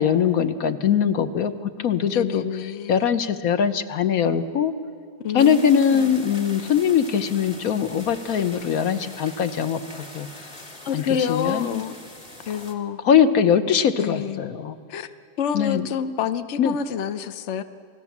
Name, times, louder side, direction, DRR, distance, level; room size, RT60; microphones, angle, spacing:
voice 1, 0.0-2.4 2.9-4.7 5.3-10.3 10.9-11.8 13.0-14.7 15.5-15.9 16.6-16.8, left 8 dB, 60° left, 11 dB, 1.0 m, -21 dB
voice 2, 1.4-3.1 5.2-6.1 10.8-12.0 12.5-13.0 14.0-14.5 14.9-15.1 15.4-17.6, left 8 dB, 80° left, 10 dB, 0.6 m, -28 dB
sound 1, 5.4-12.7, left 1 dB, 20° left, 1.9 m, -42 dB
28.0 x 18.5 x 7.3 m, 2.3 s
omnidirectional pair, 2.3 m